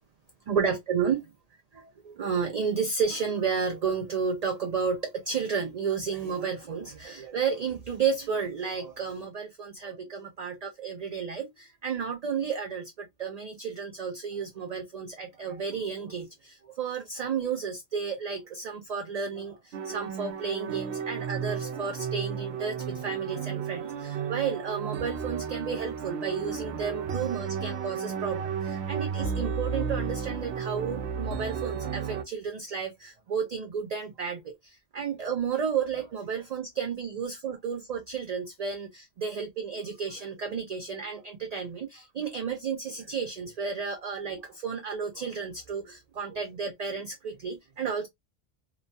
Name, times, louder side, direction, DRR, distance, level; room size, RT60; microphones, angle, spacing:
voice 1, 0.5-1.3 1.7-48.1, right 6 dB, 55° right, 0.4 m, -32 dB
sound 1, 19.7-32.2, right 6 dB, 75° right, 0.8 m, -33 dB
2.9 x 2.1 x 2.5 m
omnidirectional pair, 1.1 m